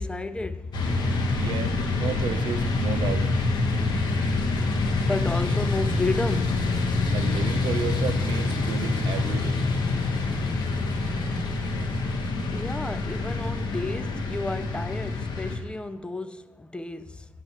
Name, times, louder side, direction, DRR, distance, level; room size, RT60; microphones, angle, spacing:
voice 1, 0.0-1.4 4.9-7.0 12.5-17.3, left 2 dB, 10° left, 0.4 m, -32 dB
sound 1, 0.7-15.6, left 3 dB, 55° left, 1.5 m, -26 dB
voice 2, 1.4-3.3 7.1-9.6, right 7 dB, 65° right, 0.9 m, -32 dB
9.1 x 6.9 x 5.7 m
cardioid pair, 115°, 9 cm